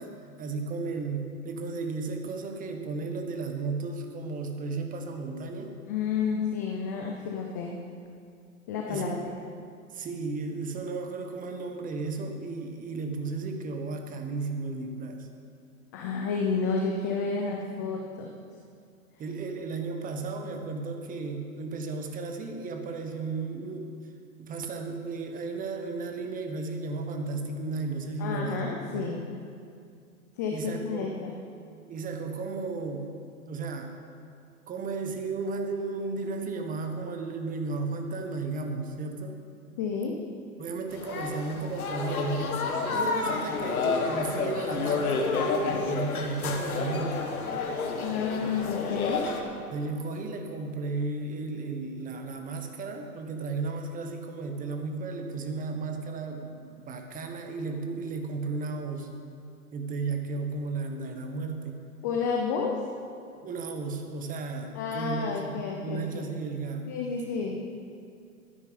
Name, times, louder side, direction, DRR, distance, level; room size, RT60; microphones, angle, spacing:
voice 1, 0.0-5.7 8.9-9.3 9.9-15.3 19.2-23.9 24.4-29.1 30.5-31.2 31.9-33.1 33.5-34.0 34.7-39.4 40.6-45.3 45.7-47.2 49.7-59.1 59.7-61.8 63.3-66.9, right 3 dB, 20° right, 5 dB, 1.2 m, -34 dB
voice 2, 5.9-7.7 8.7-9.2 15.9-18.3 28.2-29.2 30.4-31.3 39.8-40.2 48.0-49.3 62.0-62.8 64.7-66.3 66.9-67.6, left 5 dB, 15° left, 0 dB, 0.3 m, -30 dB
sound 1, 40.9-49.4, left 4 dB, 70° left, 1.7 m, -30 dB
12.5 x 9.9 x 5.4 m, 2.3 s
hypercardioid pair, 115°, 45 cm